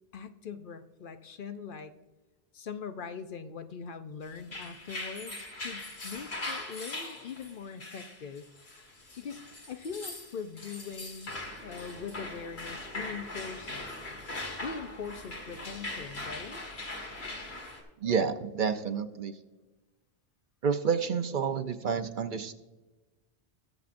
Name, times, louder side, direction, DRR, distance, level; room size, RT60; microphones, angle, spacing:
voice 1, 0.1-1.9 2.5-8.4 9.2-9.4 9.7-11.3 11.6-13.9 14.6-16.6, left 6 dB, 60° left, 9 dB, 0.8 m, -41 dB
sound 1, 4.4-17.8, left 2 dB, 90° left, 2.1 m, -41 dB
sound 2, 11.3-17.6, equal, 80° right, 1.7 m, -53 dB
voice 2, 18.0-19.3 20.6-22.5, right 6 dB, 55° right, 9 dB, 0.8 m, -29 dB
21.0 x 7.1 x 2.5 m, 1.2 s
omnidirectional pair, 1.0 m